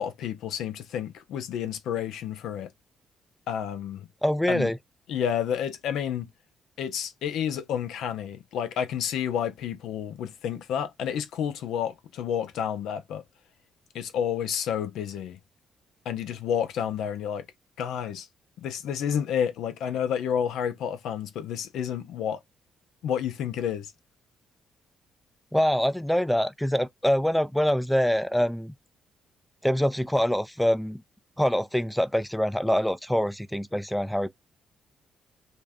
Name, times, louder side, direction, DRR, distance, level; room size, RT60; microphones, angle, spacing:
voice 1, 0.0-2.7 3.5-4.1 4.5-4.7 5.1-6.3 6.8-13.2 13.9-15.4 16.1-17.5 17.8-18.3 18.6-22.4 23.0-23.9, left 8 dB, 80° left, 0.5 m, -30 dB
voice 2, 4.2-4.8 25.5-28.7 29.6-31.0 31.4-34.3, equal, 5° left, 0.3 m, -25 dB
2.5 x 2.2 x 3.4 m
cardioid pair, 90°, 0 cm